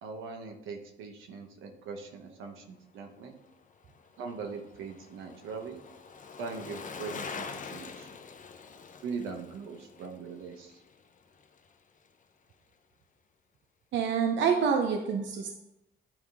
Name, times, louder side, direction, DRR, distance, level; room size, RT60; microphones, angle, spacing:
voice 1, 0.0-3.3 4.2-5.8 6.4-8.1 9.0-10.8, right 5 dB, 90° right, 4 dB, 1.1 m, -41 dB
Bicycle, 3.3-11.8 12.1-12.2, left 5 dB, 40° left, 0.7 m, -45 dB
voice 2, 13.9-15.6, right 6 dB, 70° right, 3 dB, 0.8 m, -27 dB
9.9 x 3.6 x 4.8 m, 0.88 s
cardioid pair, 90°, 20 cm